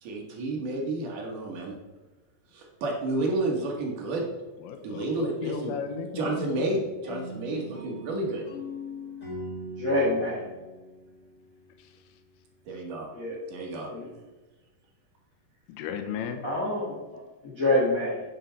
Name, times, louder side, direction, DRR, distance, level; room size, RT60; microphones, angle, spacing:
voice 1, 0.0-1.7 2.5-4.3 4.8-5.8 6.1-8.4 12.7-13.1 13.5-13.9, right 2 dB, 60° right, -1 dB, 2.4 m, -30 dB
voice 2, 4.6-6.9 15.7-16.4, left 7 dB, 75° left, 7 dB, 2.6 m, -35 dB
sound 1, 7.0-11.9, left 1 dB, 25° left, 3.1 m, -41 dB
voice 3, 9.8-10.5 13.1-13.4 13.9-14.1 16.4-17.0 17.4-18.2, left 1 dB, 60° left, -5 dB, 0.8 m, -26 dB
9.9 x 6.7 x 4.5 m, 1.2 s
omnidirectional pair, 4.9 m